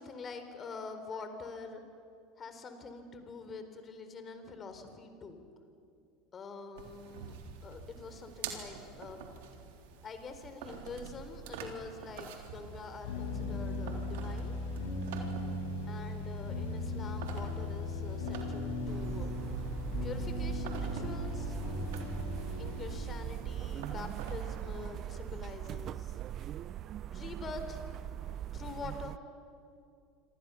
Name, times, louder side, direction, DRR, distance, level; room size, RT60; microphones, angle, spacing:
voice 1, 0.0-1.8 2.4-5.4 6.3-9.2 10.0-14.5 15.9-19.3 20.0-21.7 22.6-26.2 27.1-27.9 28.5-29.2, left 4 dB, 30° left, 8 dB, 4.0 m, -45 dB
sound 1, 6.8-24.9, right 6 dB, 70° right, 3.6 m, -48 dB
sound 2, 13.0-23.0, left 2 dB, 70° left, 6.4 m, -37 dB
sound 3, 18.9-29.2, right 11 dB, 45° right, 0.5 m, -40 dB
27.5 x 25.5 x 7.1 m, 2.5 s
hypercardioid pair, 80°, 0 cm